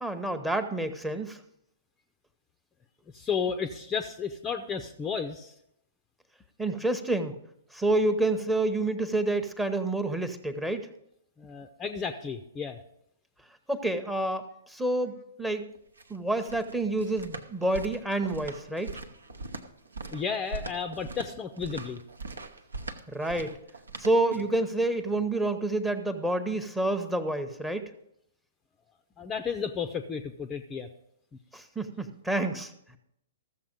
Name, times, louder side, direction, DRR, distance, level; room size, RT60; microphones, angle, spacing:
voice 1, 0.0-1.4 6.6-7.4 7.7-10.9 13.7-15.7 16.1-19.0 23.1-23.6 24.0-27.9 31.5-32.7, right 2 dB, 5° right, 7 dB, 0.9 m, -28 dB
voice 2, 3.1-5.5 11.4-12.8 20.1-22.0 29.2-30.9, left 6 dB, 20° left, 8 dB, 0.6 m, -33 dB
sound 1, 15.7-24.6, right 3 dB, 70° right, 0.8 m, -41 dB
14.0 x 7.2 x 5.1 m, 0.77 s
figure-of-eight pair, 115°, 0 cm